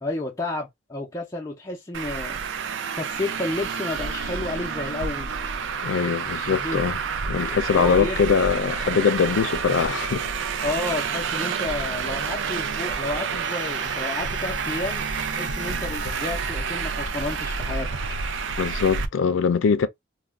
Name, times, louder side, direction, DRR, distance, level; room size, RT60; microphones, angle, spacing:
voice 1, 0.0-2.4 2.9-5.4 6.6-6.8 7.7-8.2 10.6-15.1 15.4-17.9, left 2 dB, 15° left, 0.4 m, -31 dB
Traffic noise roadway noise, 1.9-19.1, right 6 dB, 80° right, 0.4 m, -29 dB
voice 2, 5.8-7.0 7.3-10.2 18.6-19.9, left 6 dB, 90° left, 0.4 m, -22 dB
sound 1, 13.4-18.7, left 2 dB, 35° right, 0.8 m, -40 dB
2.3 x 2.1 x 3.4 m
head